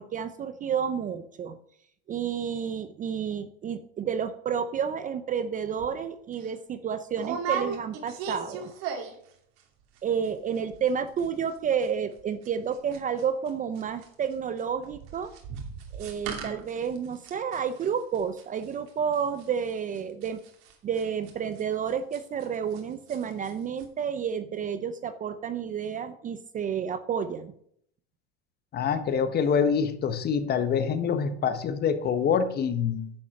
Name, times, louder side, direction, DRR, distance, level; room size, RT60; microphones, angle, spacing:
voice 1, 0.0-1.6 2.1-8.7 10.0-15.3 15.9-20.4 20.8-27.5, right 7 dB, 25° right, 11 dB, 0.5 m, -30 dB
sound 1, 5.8-5.9 6.3-6.5 7.1-9.3 9.6-10.0 10.2-10.3 10.5-10.9 11.2-13.5 13.7-22.8 23.1-23.5 23.8-23.9, right 6 dB, 70° right, 2.6 m, -37 dB
voice 2, 28.7-33.1, left 6 dB, 30° left, 10 dB, 1.0 m, -25 dB
10.0 x 6.1 x 5.8 m, 0.68 s
supercardioid pair, 130°, 32 cm